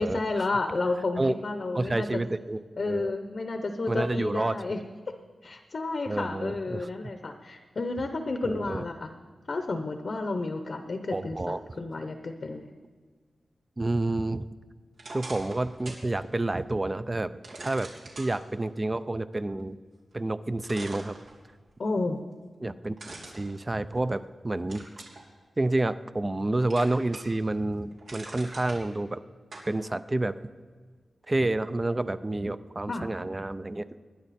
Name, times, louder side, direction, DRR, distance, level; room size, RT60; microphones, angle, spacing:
voice 1, 0.0-2.2 2.8-4.8 5.1-5.2 5.4-9.1 9.5-12.7 21.8-22.2 32.9-33.0, left 3 dB, 50° left, 6 dB, 0.8 m, -31 dB
voice 2, 1.7-2.6 2.9-3.1 3.9-4.6 6.1-6.9 8.4-8.8 11.1-11.6 13.8-14.4 15.1-17.3 17.6-17.9 18.2-19.8 20.1-21.2 22.6-22.9 23.4-24.9 25.6-29.2 29.7-30.4 31.3-33.9, right 2 dB, 20° right, 14 dB, 0.4 m, -29 dB
sound 1, 14.9-16.1 16.5-16.6 17.4-18.3 20.1-20.2 20.6-21.7 23.0-24.2 24.7-25.2 25.7-26.4 26.7-27.4 27.8-28.8 29.5-29.7, right 2 dB, 90° right, 3.1 m, -43 dB
20.5 x 10.5 x 4.2 m, 1.5 s
wide cardioid pair, 145°, 0 cm